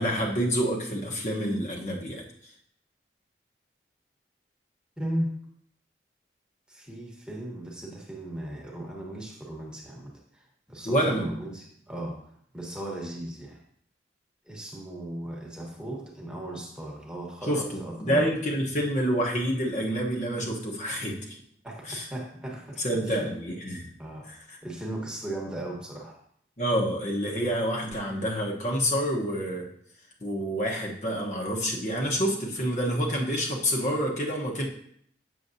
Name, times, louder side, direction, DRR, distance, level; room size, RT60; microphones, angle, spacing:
voice 1, 0.0-2.5 10.8-11.3 17.5-21.4 21.9-22.1 22.8-23.9 24.3-24.6 26.6-29.7 30.2-34.7, equal, 45° left, -2 dB, 1.0 m, -28 dB
voice 2, 5.0-5.4 6.7-13.6 14.5-18.3 21.6-23.3 24.0-24.3 24.6-26.2, right 1 dB, 5° right, -2 dB, 1.1 m, -37 dB
7.6 x 6.6 x 2.7 m, 0.66 s
head